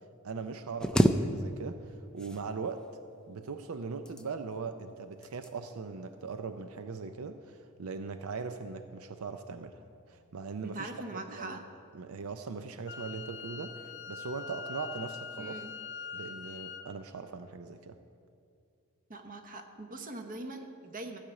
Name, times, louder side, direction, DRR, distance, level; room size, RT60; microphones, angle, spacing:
voice 1, 0.2-2.9 3.3-9.8 10.1-11.6 11.9-15.6 16.1-18.0, right 4 dB, 80° right, 9 dB, 0.5 m, -40 dB
sound 1, 0.8-1.9 2.2-2.9 3.8-4.6 5.2-5.6 6.0-6.2, equal, 5° left, 0.4 m, -29 dB
voice 2, 10.6-11.6 15.4-15.7 19.1-21.2, right 2 dB, 40° right, 6 dB, 1.0 m, -42 dB
Wind instrument woodwind instrument, 12.9-16.9, left 5 dB, 55° left, 0.5 m, -43 dB
15.0 x 5.1 x 8.0 m, 2.4 s
head